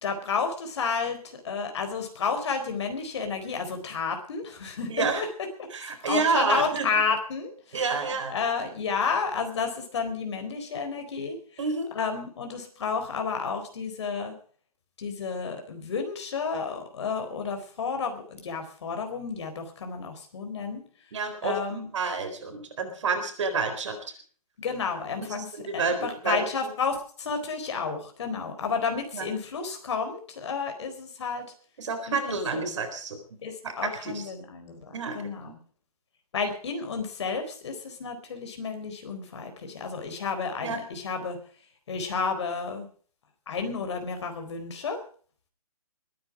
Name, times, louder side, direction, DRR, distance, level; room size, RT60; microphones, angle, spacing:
voice 1, 0.0-5.3 5.6-5.7 6.1-7.8 8.3-11.4 11.9-14.3 15.0-20.8 21.4-21.9 24.6-25.5 25.7-31.5 32.1-32.2 32.5-32.6 33.4-35.6 36.3-41.4 41.9-42.9 43.5-45.0, left 5 dB, 50° left, 6 dB, 4.2 m, -31 dB
voice 2, 4.9-5.3 5.7-6.9 7.7-8.3 11.6-11.9 21.1-24.0 25.2-26.7 29.1-29.3 31.8-33.2 33.6-34.3 34.9-35.5 40.6-40.8, right 4 dB, 50° right, 7 dB, 4.2 m, -29 dB
21.5 x 10.5 x 4.9 m, 0.43 s
hypercardioid pair, 170°, 19 cm